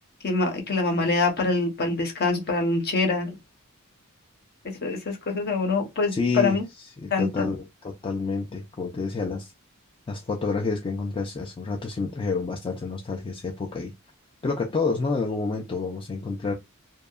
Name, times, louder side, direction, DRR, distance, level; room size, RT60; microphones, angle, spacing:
voice 1, 0.2-3.3 4.8-6.6 7.1-7.5, left 3 dB, 45° left, 0.8 m, -25 dB
voice 2, 6.1-9.5 10.1-13.9 14.4-16.5, left 4 dB, 25° left, 0.3 m, -29 dB
2.7 x 2.2 x 2.3 m
head